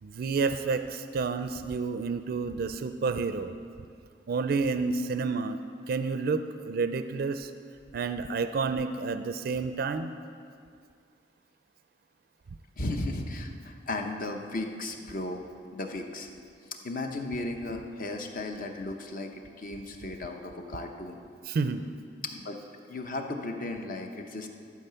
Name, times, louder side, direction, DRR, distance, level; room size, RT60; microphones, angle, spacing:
voice 1, 0.0-3.5 4.3-5.6 5.9-7.5 7.9-10.1 21.5-21.9, right 4 dB, 55° right, 10 dB, 0.4 m, -30 dB
voice 2, 12.8-15.4 15.7-16.3 16.8-21.2 22.3-22.6 22.9-24.5, left 2 dB, 50° left, 4 dB, 0.8 m, -35 dB
12.5 x 4.8 x 6.8 m, 2.2 s
head